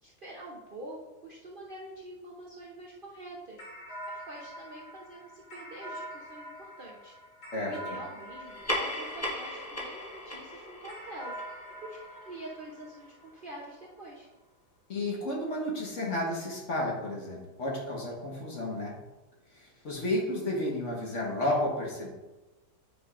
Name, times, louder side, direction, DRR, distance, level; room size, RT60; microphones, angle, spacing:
voice 1, 0.0-3.6 4.3-7.1 7.6-11.4 11.8-14.3, right 1 dB, 45° right, -4 dB, 0.7 m, -45 dB
sound 1, 3.6-10.2 10.9-13.6, equal, 75° left, 2.0 m, -45 dB
voice 2, 7.5-8.0 14.9-19.0 19.5-22.1, left 1 dB, 50° left, -2 dB, 1.6 m, -32 dB
sound 2, 8.4-13.3, left 1 dB, 15° left, 0.7 m, -38 dB
8.6 x 4.9 x 2.5 m, 1.1 s
omnidirectional pair, 1.7 m